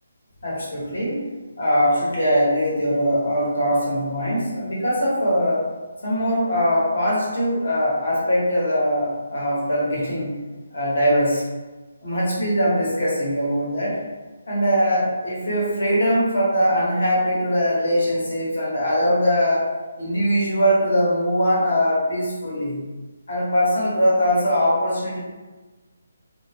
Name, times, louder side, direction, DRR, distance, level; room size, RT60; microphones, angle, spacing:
voice 1, 0.4-1.2 1.6-5.6 6.0-10.4 10.7-11.4 12.0-14.0 14.5-19.6 20.0-22.8 23.3-25.2, equal, 80° left, -7 dB, 1.3 m, -21 dB
2.7 x 2.2 x 2.9 m, 1.3 s
hypercardioid pair, 165°, 0 cm